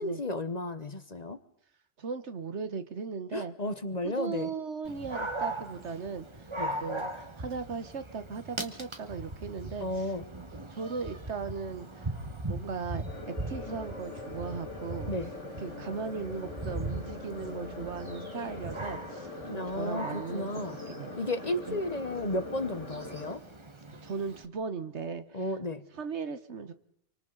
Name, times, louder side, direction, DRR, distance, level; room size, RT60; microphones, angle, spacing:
voice 1, 0.0-1.4 3.3-4.5 6.6-6.8 9.8-10.2 15.1-15.3 19.4-20.8 21.2-23.4 25.3-25.8, left 1 dB, 35° left, 12 dB, 1.1 m, -33 dB
voice 2, 2.0-3.5 4.0-6.4 6.8-10.1 10.7-12.1 12.5-15.1 15.6-20.6 20.9-21.2 21.7-21.8 24.0-25.4 26.0-26.7, right 5 dB, 70° right, 12 dB, 1.5 m, -37 dB
Dog, 4.8-24.4, right 2 dB, 25° right, 1.5 m, -40 dB
sound 1, 13.0-23.4, left 3 dB, 90° left, 2.5 m, -42 dB
28.5 x 25.0 x 4.0 m, 0.71 s
omnidirectional pair, 1.2 m